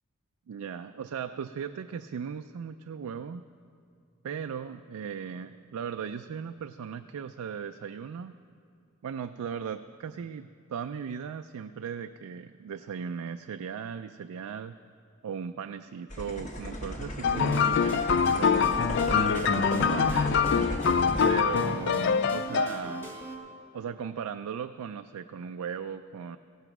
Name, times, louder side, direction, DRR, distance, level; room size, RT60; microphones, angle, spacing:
voice 1, 0.5-3.5 4.2-8.4 9.0-14.7 15.2-18.8 19.1-20.9 21.2-23.1 23.7-26.4, right 7 dB, 85° right, 8 dB, 0.4 m, -37 dB
sound 1, 16.1-21.3, left 1 dB, 35° left, 1.0 m, -36 dB
sound 2, 17.2-23.0, left 6 dB, 50° left, 0.3 m, -25 dB
sound 3, 17.3-23.4, equal, 10° left, 1.4 m, -39 dB
16.5 x 7.9 x 6.0 m, 2.5 s
head